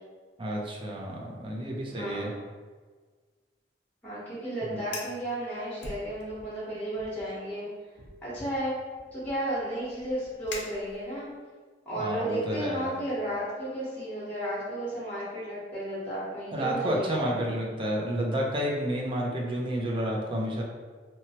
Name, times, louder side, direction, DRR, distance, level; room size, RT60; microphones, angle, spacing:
voice 1, 0.4-2.3 12.0-12.9 16.5-20.6, right 1 dB, 30° right, -2 dB, 0.5 m, -30 dB
voice 2, 1.9-2.3 4.0-7.7 8.2-8.8 9.1-11.3 11.8-17.4, right 1 dB, 10° left, -10 dB, 1.1 m, -33 dB
Fire, 4.8-5.2 5.8-6.6 6.9-7.3 8.0-11.3, left 3 dB, 90° left, 0.5 m, -43 dB
2.9 x 2.2 x 2.8 m, 1.4 s
head